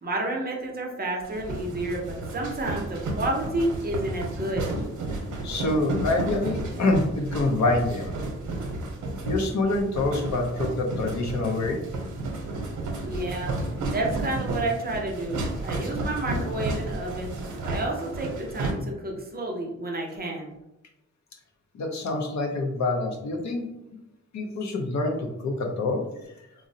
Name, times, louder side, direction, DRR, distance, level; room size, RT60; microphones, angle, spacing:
voice 1, 0.0-4.7 13.1-13.5 13.9-17.3 17.6-20.5, right 1 dB, 30° right, 0 dB, 0.6 m, -30 dB
sound 1, 1.2-18.7, right 2 dB, 80° right, 0.7 m, -32 dB
voice 2, 5.4-8.2 9.2-11.8 21.7-23.7 24.3-26.1, left 2 dB, 65° left, 2 dB, 0.6 m, -26 dB
3.7 x 2.0 x 2.6 m, 0.88 s
wide cardioid pair, 140°, 30 cm